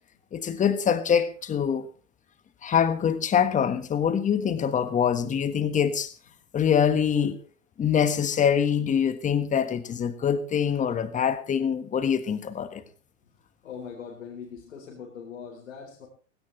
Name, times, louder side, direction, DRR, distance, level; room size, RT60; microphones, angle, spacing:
voice 1, 0.3-1.9 2.6-6.1 6.5-7.4 7.8-12.8, left 8 dB, 20° left, 11 dB, 1.5 m, -24 dB
voice 2, 13.6-16.1, left 6 dB, 80° left, -1 dB, 4.0 m, -41 dB
17.5 x 17.0 x 3.3 m, 0.37 s
hypercardioid pair, 115°, 39 cm